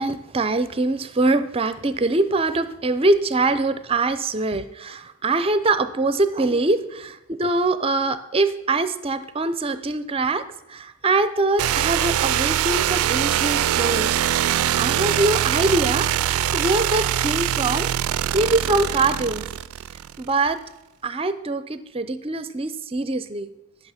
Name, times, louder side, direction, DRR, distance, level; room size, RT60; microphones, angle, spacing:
voice 1, 0.0-14.2 14.8-17.9 18.3-19.5 20.2-20.6 21.0-23.5, right 2 dB, 25° right, 13 dB, 0.6 m, -23 dB
sound 1, 11.6-20.3, right 11 dB, 85° right, 0.3 m, -23 dB
11.0 x 6.3 x 5.8 m, 0.92 s
head